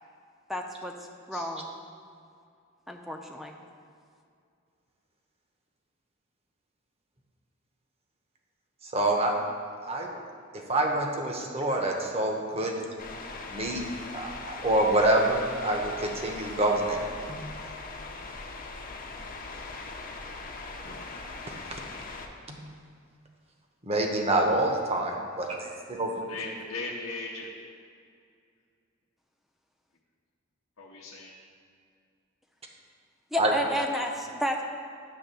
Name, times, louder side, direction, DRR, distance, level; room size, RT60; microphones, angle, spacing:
voice 1, 0.5-0.9 1.3-1.7 2.9-3.5 33.3-34.6, equal, ahead, 2 dB, 0.6 m, -31 dB
voice 2, 8.9-9.3 9.8-10.2 10.5-12.8 13.5-13.8 14.1-17.0 17.3-17.4 20.8-20.9 21.7-21.8 22.5-22.6 23.8-26.1 33.4-33.5, right 1 dB, 30° right, 1 dB, 0.9 m, -27 dB
voice 3, 11.6-12.0 26.3-27.5 30.8-31.3, left 3 dB, 85° left, -4 dB, 0.8 m, -38 dB
sound 1, 13.0-22.3, left 3 dB, 45° left, 0.7 m, -40 dB
9.6 x 3.4 x 6.8 m, 2.3 s
head